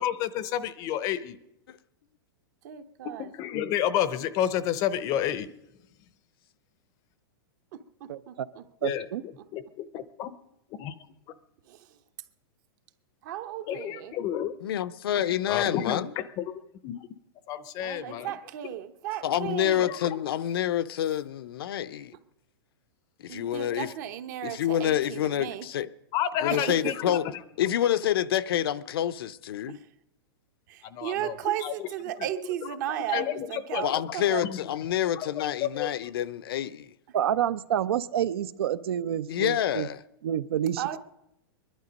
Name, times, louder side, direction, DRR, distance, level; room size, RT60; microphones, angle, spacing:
voice 1, 0.0-1.4 3.2-5.5 8.8-9.0 9.5-10.3 10.8-10.9 13.7-14.5 15.5-16.0 16.4-17.0 17.5-18.3 19.9-20.0 26.1-26.9 30.9-31.3 31.6-31.7 33.1-34.0 34.4-34.6 35.2-35.9, left 10 dB, 25° left, 0.6 m, -30 dB
voice 2, 2.6-3.3 7.7-8.6 11.7-11.8 13.2-14.1 17.8-19.9 23.3-25.6 26.5-27.1 30.7-34.4 40.8-41.0, right 12 dB, 45° right, 0.9 m, -35 dB
voice 3, 8.1-8.5 8.8-9.2 37.1-39.9 40.2-41.0, right 10 dB, 70° right, 0.6 m, -28 dB
voice 4, 14.6-16.2 19.2-22.1 23.2-23.9 24.4-25.9 26.4-27.3 27.6-29.8 33.8-36.9 39.3-40.0, left 11 dB, 65° left, 0.6 m, -28 dB
22.0 x 11.5 x 5.2 m
supercardioid pair, 160°, 13 cm